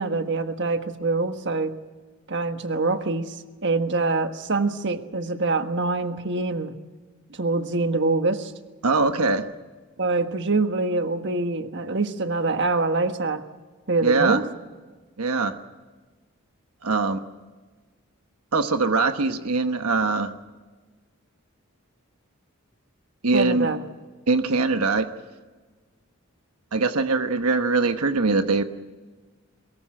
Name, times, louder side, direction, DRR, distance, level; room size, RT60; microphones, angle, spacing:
voice 1, 0.0-1.7 2.3-3.4 3.6-6.7 7.3-8.5 10.0-13.4 13.9-14.5 23.3-23.8, right 3 dB, 55° right, 8 dB, 1.4 m, -25 dB
voice 2, 8.8-9.4 14.0-14.4 15.2-15.5 16.8-17.2 18.5-20.3 23.2-23.7 24.3-25.1 26.7-28.6, right 3 dB, 90° right, 8 dB, 1.2 m, -22 dB
23.0 x 20.5 x 7.7 m, 1.3 s
head